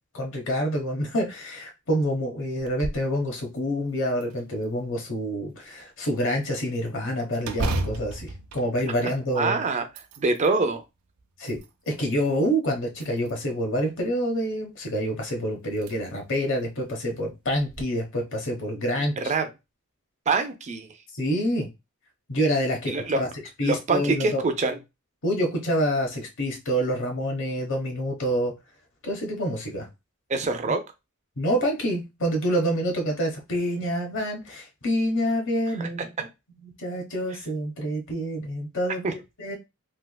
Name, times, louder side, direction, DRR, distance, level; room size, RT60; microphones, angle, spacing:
voice 1, 0.1-9.6 11.4-11.6 11.9-19.3 21.1-21.7 22.3-23.3 23.6-24.4 25.2-28.5 29.0-29.9 31.4-36.0 36.6-39.5, equal, 60° left, 2 dB, 1.0 m, -27 dB
sound 1, 2.6-3.1 3.6-3.7 4.2-5.0 7.4-9.4 9.8-10.6 11.2-12.0 12.9-13.6 15.1-15.2 15.7-15.9 16.4-16.5 17.6-17.8, right 2 dB, 85° right, 0.5 m, -33 dB
voice 2, 9.3-9.9 10.2-10.8 19.2-19.5 20.3-20.9 22.9-23.2 23.6-24.8 30.3-30.8 35.8-36.3 39.0-39.1, right 3 dB, 30° right, 7 dB, 0.4 m, -25 dB
3.4 x 2.8 x 2.2 m, 0.24 s
head